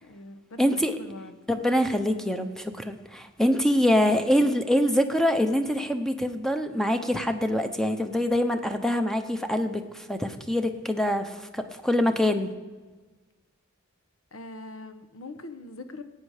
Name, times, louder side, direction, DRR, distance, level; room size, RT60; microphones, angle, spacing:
voice 1, 0.0-1.3 14.3-16.0, left 2 dB, 80° left, 9 dB, 1.0 m, -42 dB
voice 2, 0.6-0.9 1.5-12.5, equal, ahead, 7 dB, 0.7 m, -25 dB
17.5 x 8.9 x 4.9 m, 1.3 s
head